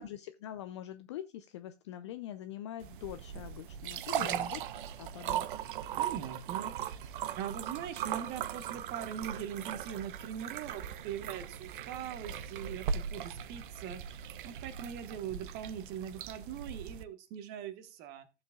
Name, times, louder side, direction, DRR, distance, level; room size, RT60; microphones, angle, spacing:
voice 1, 0.0-4.6 5.0-5.5, left 12 dB, 25° left, 10 dB, 0.4 m, -43 dB
sound 1, 2.8-17.0, right 9 dB, 45° right, 0.7 m, -39 dB
voice 2, 4.2-4.5 6.0-18.2, right 9 dB, 25° right, 11 dB, 1.3 m, -42 dB
14.5 x 7.2 x 2.3 m, 0.29 s
figure-of-eight pair, 115°, 36 cm